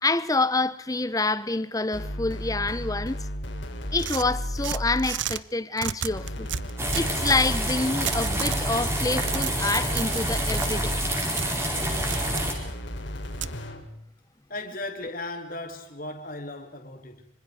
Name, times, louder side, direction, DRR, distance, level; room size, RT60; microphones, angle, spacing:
voice 1, 0.0-3.3 3.9-6.5 6.9-10.9, left 3 dB, 20° left, 0.9 m, -27 dB
sound 1, 1.9-5.2 6.1-11.2 11.7-13.9, equal, 70° left, 3.8 m, -33 dB
sound 2, 4.0-5.4 5.8-7.4 8.0-8.6 9.0-10.7 11.4-11.5 12.1-12.5 13.4-13.5, right 10 dB, 70° right, 0.8 m, -32 dB
sound 3, 6.8-12.5, right 1 dB, 15° right, 4.5 m, -28 dB
voice 2, 14.5-17.3, left 2 dB, 45° left, 2.8 m, -36 dB
25.5 x 25.0 x 4.9 m
head